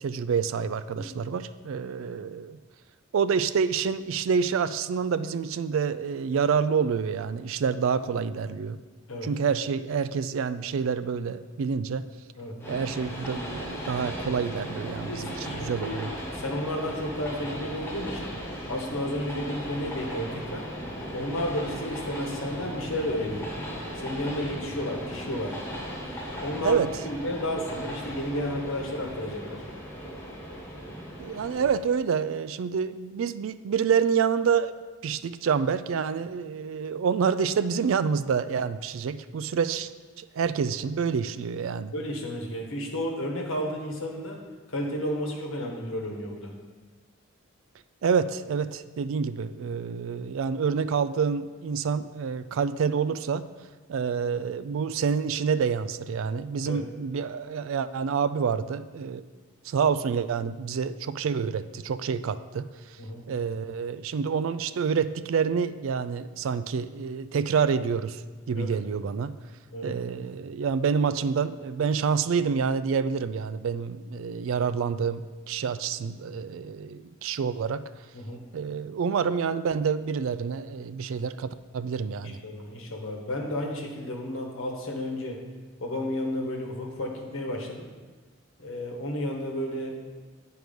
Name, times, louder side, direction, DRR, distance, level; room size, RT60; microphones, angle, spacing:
voice 1, 0.0-2.6 3.1-8.8 9.2-12.1 12.7-16.1 26.6-26.9 31.2-34.7 35.0-39.9 40.2-41.9 48.0-53.4 53.9-59.2 59.6-62.7 63.3-68.2 68.5-69.3 69.8-77.8 78.5-82.4, right 6 dB, 70° right, 14 dB, 0.3 m, -27 dB
Train, 12.6-31.7, equal, 10° left, 1.0 m, -37 dB
voice 2, 15.0-16.0 16.3-18.3 18.7-20.7 21.1-23.5 23.9-25.6 26.4-29.6 41.9-44.4 44.7-46.5 56.6-56.9 63.0-63.2 68.5-68.7 69.7-69.9 78.1-78.4 82.2-85.4 85.8-87.8 88.6-90.2, left 1 dB, 70° left, 1 dB, 1.3 m, -32 dB
9.1 x 4.8 x 5.2 m, 1.3 s
head